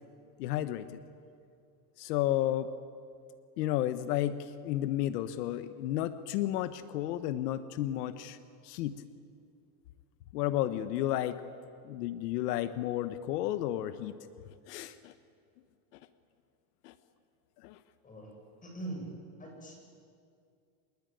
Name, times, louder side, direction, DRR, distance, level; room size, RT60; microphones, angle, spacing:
voice 1, 0.4-0.9 2.0-2.7 3.6-8.4 8.6-9.0 10.3-11.4 11.8-14.2 14.7-15.1 16.8-16.9 17.6-17.8, left 13 dB, 85° left, 12 dB, 1.2 m, -32 dB
voice 2, 18.6-19.1 19.4-19.7, right 2 dB, 15° left, 1 dB, 7.8 m, -41 dB
27.0 x 21.5 x 9.3 m, 2.3 s
supercardioid pair, 145°, 46 cm